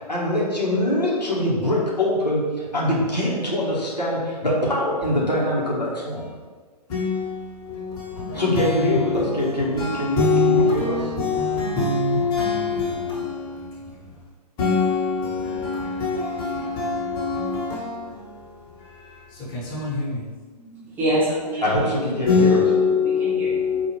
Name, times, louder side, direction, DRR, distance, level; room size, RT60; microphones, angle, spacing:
voice 1, 0.0-6.3 8.3-11.0 21.6-22.6, left 1 dB, 90° left, 1.1 m, -23 dB
voice 2, 6.9-14.0 14.6-20.2 22.3-23.9, left 4 dB, 20° left, 1.1 m, -24 dB
voice 3, 20.5-22.3 23.0-23.6, right 1 dB, 10° right, 0.6 m, -27 dB
4.2 x 2.5 x 2.9 m
figure-of-eight pair, 125°, 21 cm